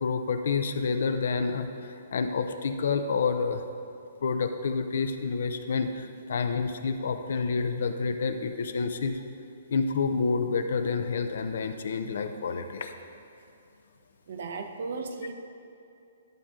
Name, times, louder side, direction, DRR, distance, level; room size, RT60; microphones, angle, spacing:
voice 1, 0.0-3.6 4.2-9.2 9.7-12.9, left 5 dB, 65° left, 8 dB, 0.6 m, -28 dB
voice 2, 14.3-15.3, right 4 dB, 60° right, 6 dB, 0.8 m, -35 dB
11.5 x 6.6 x 3.7 m, 2.7 s
hypercardioid pair, 165°, 0 cm